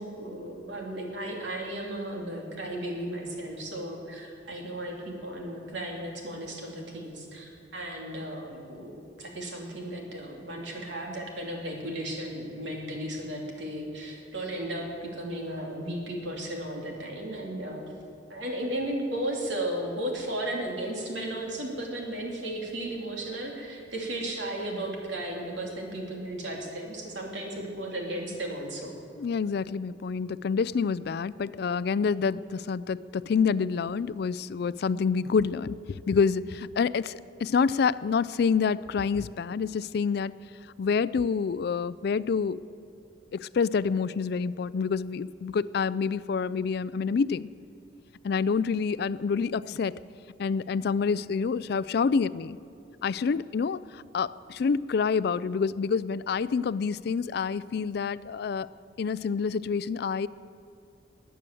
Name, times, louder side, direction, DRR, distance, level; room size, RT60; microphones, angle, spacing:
voice 1, 0.0-8.9 9.2-17.8 18.3-28.9, right 1 dB, 70° right, 0 dB, 3.1 m, -35 dB
voice 2, 29.2-40.3 40.8-42.6 43.3-47.5 48.2-50.0 50.4-52.6 53.0-58.7 59.0-60.3, left 5 dB, 55° left, 18 dB, 0.3 m, -27 dB
20.5 x 9.1 x 7.7 m, 2.6 s
head